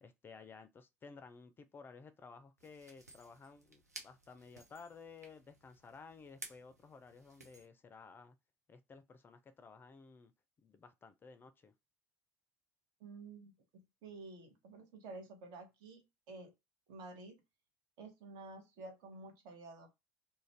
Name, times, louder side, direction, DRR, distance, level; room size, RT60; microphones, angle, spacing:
voice 1, 0.0-8.4 8.7-10.3 10.6-11.7, left 4 dB, 25° left, 0.4 m, -55 dB
sound 1, 2.6-7.7, right 2 dB, 90° right, 0.5 m, -56 dB
voice 2, 13.0-16.5 16.9-17.4 18.0-19.9, right 3 dB, 55° right, 0.9 m, -51 dB
2.5 x 2.2 x 3.1 m
figure-of-eight pair, 65°, 9 cm